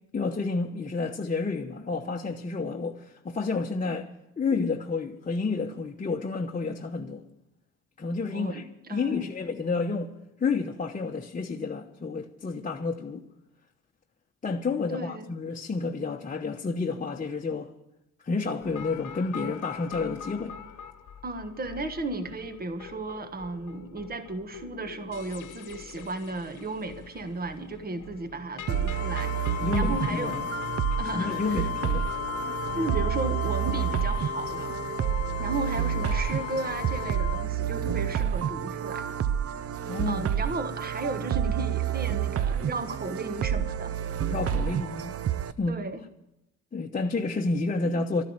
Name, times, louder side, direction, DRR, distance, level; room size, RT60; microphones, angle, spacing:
voice 1, 0.1-4.1 4.4-7.2 8.0-10.1 10.4-13.2 14.4-17.7 18.2-20.6 29.6-30.5 31.1-32.1 39.8-40.3 44.3-45.2 45.6-45.8 46.7-48.2, left 4 dB, 25° left, 1.0 m, -30 dB
voice 2, 8.3-9.3 14.9-15.3 21.2-30.4 31.0-31.7 32.3-32.4 32.7-34.8 35.4-39.1 40.1-43.9 45.7-46.0, right 2 dB, 30° right, 1.4 m, -34 dB
sound 1, 18.6-37.1, left 8 dB, 85° left, 1.2 m, -45 dB
sound 2, 28.7-45.5, right 9 dB, 50° right, 0.6 m, -29 dB
Wind instrument woodwind instrument, 28.9-37.5, left 16 dB, 55° left, 0.4 m, -35 dB
13.0 x 10.0 x 8.8 m
cardioid pair, 90°, 30 cm